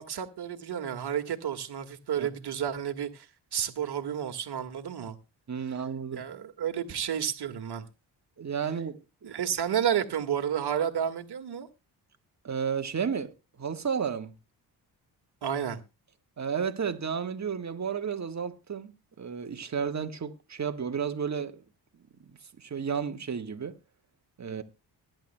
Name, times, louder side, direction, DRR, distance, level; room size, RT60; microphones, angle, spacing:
voice 1, 0.0-5.2 6.1-7.9 9.2-11.7 15.4-15.8, right 9 dB, 60° right, 1.8 m, -31 dB
voice 2, 5.5-6.2 8.4-9.3 12.4-14.3 16.4-18.9 19.2-21.6 22.6-23.7 24.4-24.6, right 6 dB, 35° right, 1.5 m, -32 dB
21.0 x 10.5 x 2.2 m
supercardioid pair, 60°, 46 cm